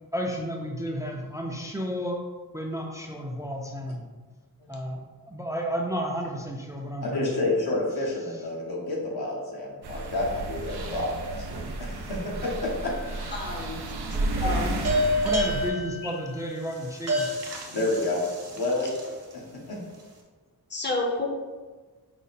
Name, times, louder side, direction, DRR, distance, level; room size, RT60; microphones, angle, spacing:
voice 1, 0.1-2.2 2.5-4.1 4.7-5.0 5.3-7.3 14.1-14.8 15.2-17.4, equal, 10° right, 0 dB, 0.4 m, -32 dB
voice 2, 7.0-12.9 17.7-18.2 18.5-19.4 19.7-19.8, left 2 dB, 75° left, -3 dB, 1.2 m, -29 dB
sound 1, 9.8-15.7, right 2 dB, 85° right, 0.6 m, -32 dB
sound 2, 12.8-13.5 14.8-19.3, equal, 40° right, 0.8 m, -29 dB
voice 3, 13.3-13.8 14.4-14.8 16.0-16.1 20.7-21.3, left 2 dB, 30° left, 0 dB, 0.7 m, -29 dB
5.1 x 2.1 x 4.0 m, 1.4 s
wide cardioid pair, 90°, 38 cm